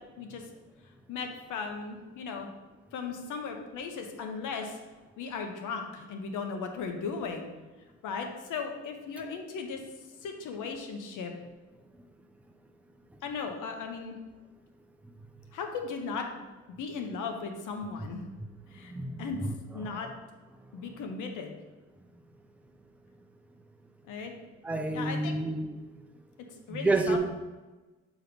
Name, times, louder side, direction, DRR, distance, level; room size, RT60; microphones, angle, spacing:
voice 1, 1.1-2.5 2.9-4.8 5.2-7.5 8.0-9.8 10.2-11.3 13.2-14.2 15.5-18.3 18.7-18.9 19.2-19.4 19.7-20.1 20.7-21.6 24.0-24.3 24.9-25.3 26.7-27.2, left 5 dB, 85° left, 4 dB, 0.9 m, -37 dB
voice 2, 18.8-19.5 19.8-20.1 24.6-25.9 26.7-27.2, right 2 dB, 5° right, 5 dB, 0.5 m, -30 dB
6.6 x 3.1 x 5.1 m, 1.2 s
cardioid pair, 90°, 30 cm